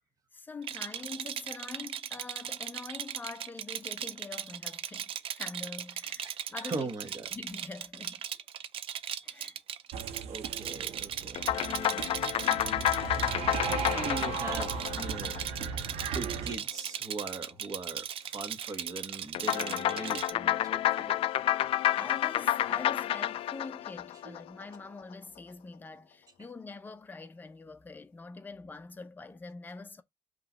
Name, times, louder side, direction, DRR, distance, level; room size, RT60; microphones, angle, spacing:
voice 1, 0.3-5.1 5.3-6.9 7.3-8.2 9.2-9.6 21.9-30.0, left 3 dB, 20° left, 0.6 m, -44 dB
Rattle, 0.6-20.3, right 9 dB, 60° right, 0.5 m, -38 dB
voice 2, 6.2-7.3 10.3-12.0 13.6-15.5 16.1-21.9 22.6-22.7 24.2-24.6, right 3 dB, 35° right, 1.3 m, -41 dB
sound 1, 9.9-16.5, right 7 dB, 90° right, 0.9 m, -37 dB
sound 2, 11.3-16.0 19.3-24.8, left 13 dB, 65° left, 0.4 m, -30 dB
5.4 x 3.2 x 5.5 m
cardioid pair, 170°, 10 cm